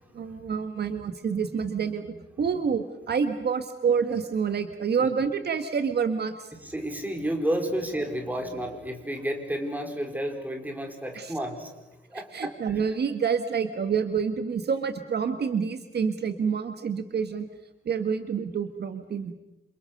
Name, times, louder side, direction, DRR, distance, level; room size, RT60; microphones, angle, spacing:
voice 1, 0.1-6.5 11.1-11.3 12.1-17.5 17.8-19.3, right 6 dB, 55° right, 8 dB, 1.6 m, -28 dB
voice 2, 6.6-11.7 12.1-12.5, right 1 dB, 10° right, 3 dB, 4.9 m, -31 dB
28.5 x 28.0 x 6.7 m, 0.99 s
wide cardioid pair, 145°, 20 cm